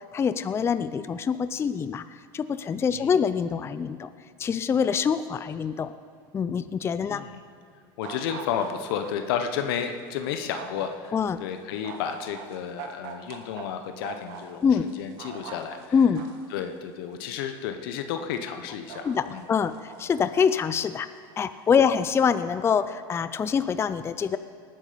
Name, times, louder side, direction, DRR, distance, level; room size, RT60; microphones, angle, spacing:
voice 1, 0.1-2.0 2.3-4.1 4.4-5.9 6.3-7.2 11.1-11.4 14.6-14.8 15.9-16.2 19.0-21.1 21.4-24.4, left 6 dB, 20° left, 13 dB, 0.4 m, -25 dB
voice 2, 7.0-7.4 8.0-16.0 16.5-19.5 21.8-21.9, left 8 dB, 80° left, 7 dB, 1.0 m, -32 dB
sound 1, 8.0-9.1 9.7-9.8 10.5-10.9 11.8-13.6 14.0-14.4 14.9-16.4 17.3-17.4 18.3-18.4 18.9-20.4 21.0-21.8 22.2-22.6, right 7 dB, 75° right, 1.8 m, -41 dB
18.5 x 9.5 x 5.1 m, 2.3 s
supercardioid pair, 120°, 12 cm